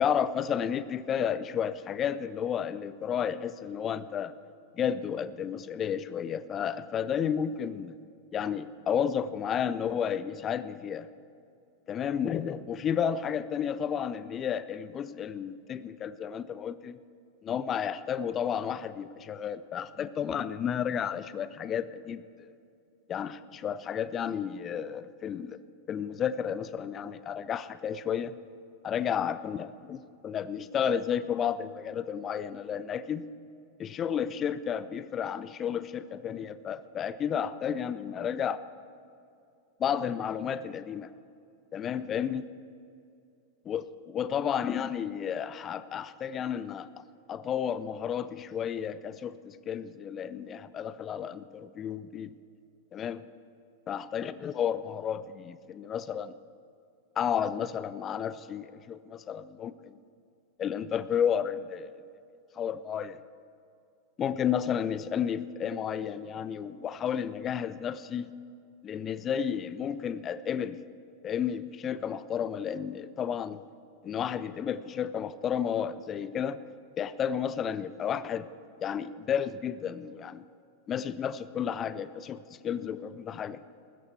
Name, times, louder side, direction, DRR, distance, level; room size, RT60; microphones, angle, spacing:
voice 1, 0.0-4.3 4.7-8.0 8.3-11.1 11.9-17.0 17.4-22.5 23.1-25.6 25.9-28.3 28.8-33.3 33.8-38.6 39.8-41.1 41.7-42.5 43.7-46.9 47.3-52.4 52.9-53.3 53.9-56.3 57.2-60.0 60.6-61.9 62.6-63.2 64.2-68.3 68.8-70.8 71.2-73.6 74.0-76.6 77.0-78.5 78.8-80.4 80.9-83.6, left 8 dB, 25° left, 15 dB, 0.5 m, -32 dB
15.5 x 13.5 x 4.4 m, 2.5 s
figure-of-eight pair, 90°, 0 cm